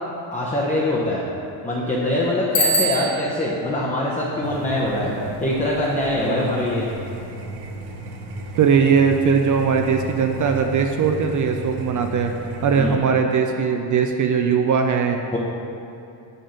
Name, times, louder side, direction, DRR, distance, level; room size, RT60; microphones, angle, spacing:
voice 1, 0.3-1.2 1.6-5.1 5.4-6.9 12.8-13.0 15.3-15.4, left 1 dB, 15° left, -4 dB, 0.8 m, -23 dB
Bicycle bell, 2.5-3.5, equal, 70° left, 0.9 m, -22 dB
sound 1, 4.4-13.0, right 2 dB, 80° right, 0.9 m, -34 dB
voice 2, 6.2-6.6 8.6-12.3 12.6-15.2, right 6 dB, 40° right, 5 dB, 0.4 m, -20 dB
5.4 x 3.6 x 5.7 m, 2.7 s
supercardioid pair, 80°, 49 cm